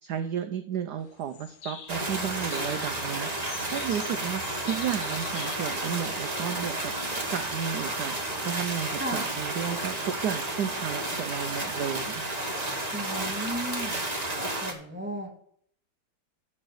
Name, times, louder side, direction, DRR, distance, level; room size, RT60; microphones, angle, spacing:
voice 1, 0.0-3.3 3.7-12.2, right 9 dB, 70° right, 7 dB, 1.0 m, -33 dB
sound 1, 1.0-6.7, left 7 dB, 80° left, 0.7 m, -45 dB
sound 2, 1.9-14.7, right 2 dB, 20° right, 1.3 m, -32 dB
voice 2, 9.0-9.3 12.9-15.3, right 1 dB, 5° right, -1 dB, 2.1 m, -36 dB
13.0 x 4.4 x 6.5 m, 0.63 s
omnidirectional pair, 2.3 m